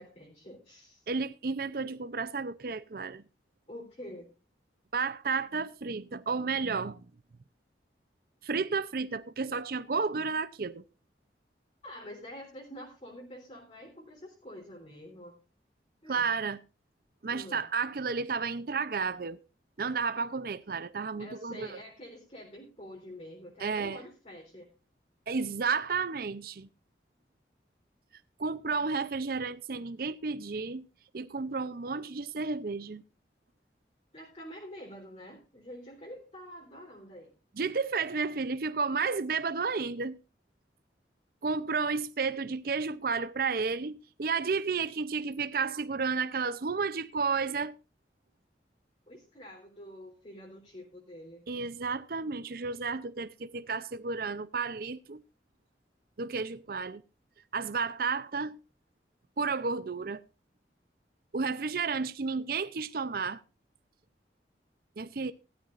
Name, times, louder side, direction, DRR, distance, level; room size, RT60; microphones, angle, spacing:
voice 1, 0.0-1.1 3.7-4.3 11.8-15.4 16.0-16.3 17.3-17.6 21.2-24.7 34.1-37.3 49.1-51.4, equal, 35° left, 3.6 m, -47 dB
voice 2, 1.1-3.2 4.9-7.0 8.4-10.8 16.1-16.6 17.2-19.4 19.8-21.8 23.6-24.0 25.3-26.7 28.4-30.9 31.1-33.0 37.6-40.2 41.4-47.7 51.5-55.2 56.2-57.0 57.5-58.6 59.4-60.2 61.3-63.4 65.0-65.3, right 4 dB, 55° right, 0.6 m, -32 dB
16.5 x 13.0 x 2.5 m
head